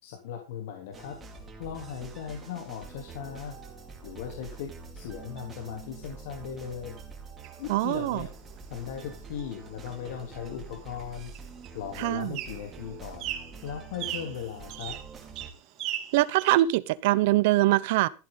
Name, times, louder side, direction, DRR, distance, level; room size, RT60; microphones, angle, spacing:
voice 1, 0.0-1.2 1.6-3.6 4.0-7.0 7.6-8.3 8.7-11.3 11.7-13.3 13.6-15.0, left 8 dB, 80° left, 3.5 m, -38 dB
sound 1, 0.9-15.5, right 4 dB, 15° right, 4.2 m, -46 dB
sound 2, 7.4-16.6, right 12 dB, 45° right, 3.0 m, -41 dB
voice 2, 7.7-8.2 12.0-12.3 16.1-18.1, right 17 dB, 70° right, 1.0 m, -23 dB
14.5 x 11.5 x 4.1 m
supercardioid pair, 150°, 0 cm